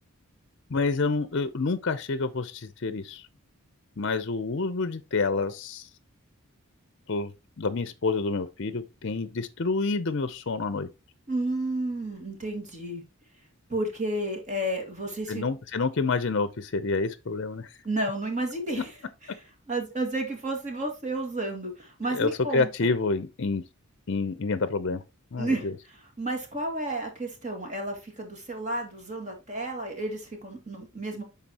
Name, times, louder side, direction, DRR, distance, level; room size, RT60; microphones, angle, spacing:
voice 1, 0.7-3.2 4.0-5.9 7.1-7.3 7.6-10.9 15.3-17.7 22.1-23.6 24.1-25.0 25.3-25.7, left 3 dB, 55° left, 0.6 m, -28 dB
voice 2, 11.3-13.0 13.7-15.5 17.8-18.9 19.2-22.7 25.4-25.7 26.2-31.2, right 1 dB, 35° right, 2.0 m, -31 dB
11.5 x 4.0 x 2.9 m
head